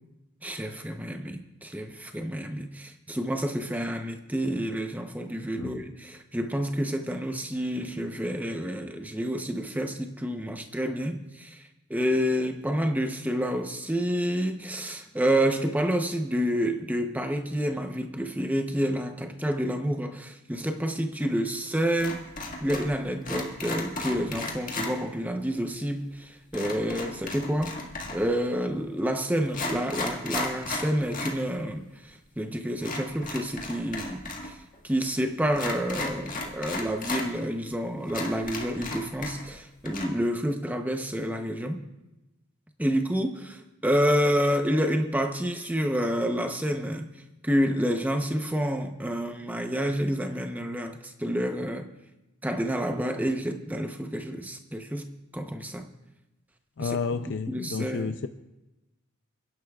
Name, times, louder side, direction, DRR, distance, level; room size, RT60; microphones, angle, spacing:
voice 1, 0.4-22.2 22.6-27.8 28.1-34.6 34.8-41.8 42.8-47.2 47.4-51.9 52.4-55.9 56.8-57.0 57.5-58.2, equal, 5° right, 0.7 m, -29 dB
sound 1, 22.0-23.0 23.2-24.9 26.5-28.3 29.0-29.1 29.5-31.4 31.7-31.8 32.8-34.5 34.7-34.8 35.5-37.3 37.7-37.8 38.1-39.6 39.8-40.1, left 2 dB, 35° left, 1.8 m, -34 dB
voice 2, 56.8-58.3, left 5 dB, 55° left, 0.4 m, -31 dB
30.0 x 11.0 x 2.4 m
head